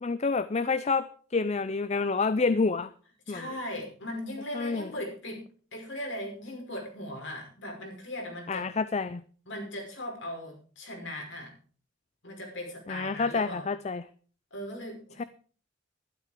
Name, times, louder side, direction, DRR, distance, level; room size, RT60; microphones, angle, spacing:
voice 1, 0.0-2.9 3.3-3.5 4.5-4.9 8.5-9.2 12.9-14.0 15.2-15.3, left 4 dB, 35° left, 14 dB, 0.5 m, -28 dB
voice 2, 3.3-5.4 5.7-8.7 9.5-11.5 12.2-13.7 14.5-15.3, left 1 dB, 65° left, 1 dB, 5.6 m, -38 dB
12.0 x 12.0 x 5.0 m, 0.42 s
head